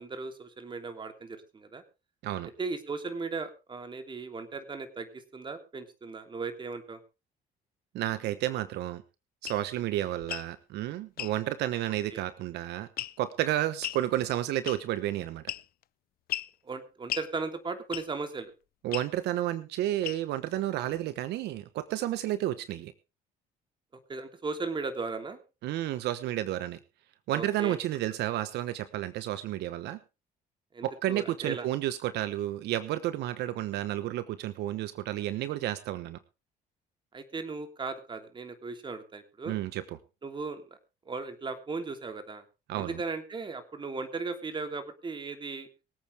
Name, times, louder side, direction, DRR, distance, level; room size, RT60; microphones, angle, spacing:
voice 1, 0.0-1.8 2.6-7.0 12.1-12.2 16.6-18.5 24.1-25.4 27.3-27.8 30.7-31.7 37.1-39.5 40.2-40.7 41.0-42.4 42.7-45.7, right 4 dB, 30° right, 7 dB, 3.1 m, -37 dB
voice 2, 7.9-9.0 9.4-12.9 13.2-15.4 18.8-22.9 25.6-26.8 27.3-30.0 30.8-36.2 39.5-39.8 42.7-43.0, right 13 dB, 80° right, 13 dB, 1.1 m, -31 dB
sound 1, 9.4-9.6 10.2-10.5 11.2-11.4 13.0-13.3 13.8-14.0 14.7-15.0 15.5-15.8 16.3-16.5 17.1-17.3 17.9-18.2 18.9-19.1 20.0-20.4, left 14 dB, 60° left, 0.6 m, -36 dB
24.0 x 8.7 x 3.5 m, 0.30 s
cardioid pair, 110°, 17 cm